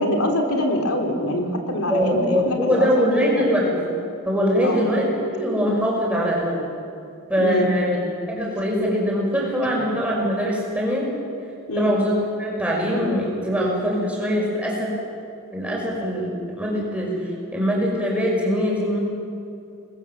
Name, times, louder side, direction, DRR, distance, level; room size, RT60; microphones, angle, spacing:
voice 1, 0.0-3.5 4.6-4.9 7.4-7.7 11.7-11.9, left 1 dB, 85° left, 2 dB, 3.3 m, -24 dB
voice 2, 1.9-3.7 4.2-5.1 5.3-6.6 7.3-8.0 8.3-11.1 11.8-14.9 15.5-17.1 17.5-19.0, equal, 5° right, -3 dB, 6.2 m, -22 dB
28.0 x 20.5 x 7.5 m, 2.6 s
head